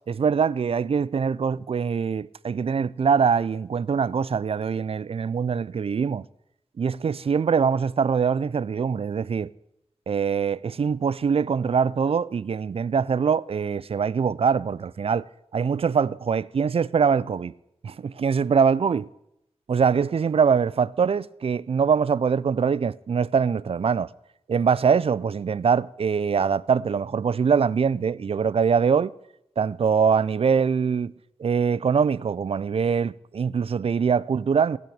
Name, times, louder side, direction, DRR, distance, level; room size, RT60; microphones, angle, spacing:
voice 1, 0.1-6.2 6.8-9.5 10.1-15.2 15.5-17.5 17.8-19.1 19.7-24.1 24.5-29.1 29.6-31.1 31.4-34.8, right 6 dB, 55° right, 0.4 m, -23 dB
16.0 x 6.2 x 8.6 m
wide cardioid pair, 90°, 12 cm